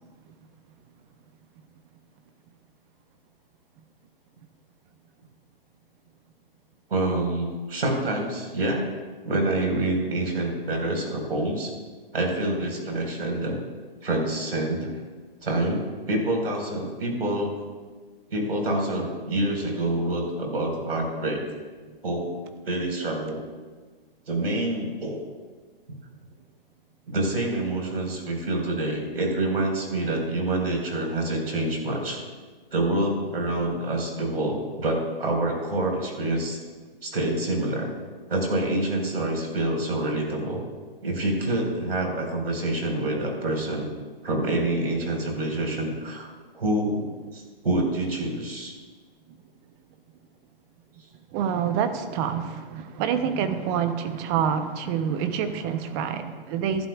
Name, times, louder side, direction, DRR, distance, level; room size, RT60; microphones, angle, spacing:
voice 1, 6.9-8.8 9.2-11.7 12.1-13.5 14.0-14.9 15.4-17.5 18.3-21.4 22.0-22.3 22.7-23.4 24.3-25.2 27.1-32.2 32.7-36.6 37.0-37.9 38.3-40.6 41.0-43.9 44.2-46.3 46.5-48.7, right 1 dB, 75° right, 1 dB, 4.7 m, -27 dB
voice 2, 51.3-56.9, right 8 dB, 25° right, 9 dB, 0.8 m, -27 dB
26.5 x 11.5 x 2.4 m, 1.4 s
hypercardioid pair, 130°, 29 cm